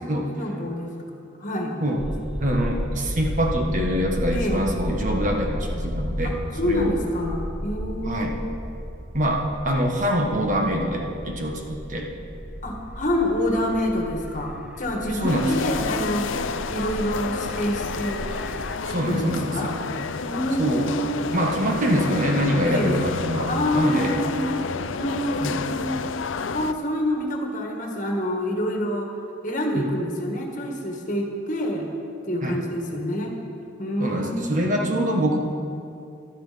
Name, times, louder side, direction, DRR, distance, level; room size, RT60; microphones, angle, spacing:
voice 1, 0.2-0.9 1.4-1.8 4.3-4.7 6.2-8.6 12.6-16.4 16.7-18.3 19.1-19.7 20.2-21.6 22.6-23.0 23.5-24.6 24.9-26.1 26.5-29.1 29.4-31.9 32.3-33.3 33.8-35.2, equal, 40° left, 1 dB, 1.7 m, -27 dB
sound 1, 2.0-18.8, equal, 5° right, 0.5 m, -33 dB
voice 2, 2.4-6.3 6.6-6.9 8.0-8.3 9.1-12.1 15.2-15.6 18.9-19.7 20.6-20.9 21.3-24.2 25.4-25.6 29.7-29.9 32.4-32.6 34.0-35.4, equal, 40° right, 0 dB, 1.5 m, -24 dB
sound 2, 15.3-26.7, left 5 dB, 75° left, 0.5 m, -30 dB
16.5 x 12.0 x 5.2 m, 2.7 s
head